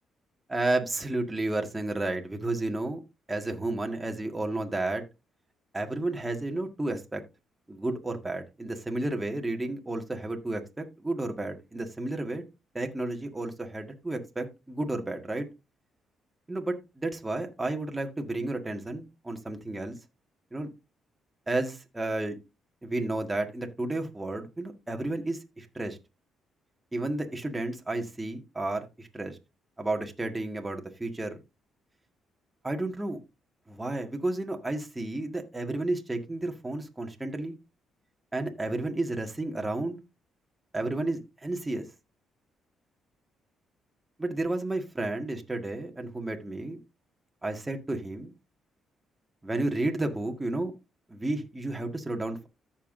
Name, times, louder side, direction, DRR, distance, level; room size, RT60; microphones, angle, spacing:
voice 1, 0.5-3.0 3.3-5.0 5.7-7.2 7.7-12.4 12.7-15.5 16.5-20.0 20.5-20.7 21.5-22.4 22.8-26.0 26.9-29.4 29.8-31.4 32.6-33.2 33.7-37.6 38.3-40.0 40.7-41.8 44.2-46.8 47.4-48.3 49.4-50.7 51.1-52.5, right 2 dB, 15° right, 3 dB, 1.8 m, -32 dB
14.0 x 5.8 x 2.6 m, 0.26 s
cardioid pair, 90°, 0 cm